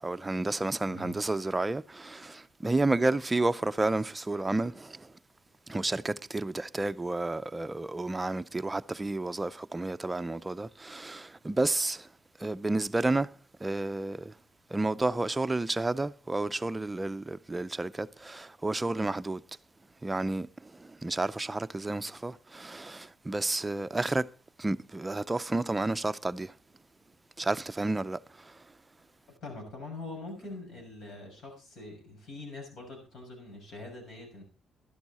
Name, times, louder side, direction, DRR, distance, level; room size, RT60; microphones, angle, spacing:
voice 1, 0.0-5.1 5.7-12.1 12.4-13.3 13.6-14.3 14.7-19.4 20.0-24.3 24.6-26.5 27.4-28.2 28.4-28.5, right 2 dB, 20° right, 0.5 m, -31 dB
voice 2, 29.4-34.4, left 2 dB, 65° left, 6.5 m, -43 dB
12.0 x 11.5 x 4.2 m
cardioid pair, 90°, 0 cm